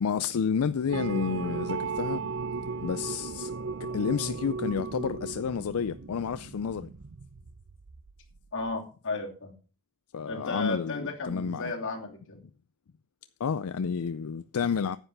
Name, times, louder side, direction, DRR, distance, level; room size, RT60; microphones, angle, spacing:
voice 1, 0.0-2.2 2.8-3.5 3.8-6.9 10.1-11.7 13.4-15.0, left 6 dB, 85° left, 0.4 m, -30 dB
sound 1, 0.9-8.4, right 4 dB, 65° right, 0.6 m, -36 dB
voice 2, 8.5-9.5 10.3-12.4, left 3 dB, 60° left, 3.0 m, -34 dB
9.9 x 8.0 x 5.5 m
head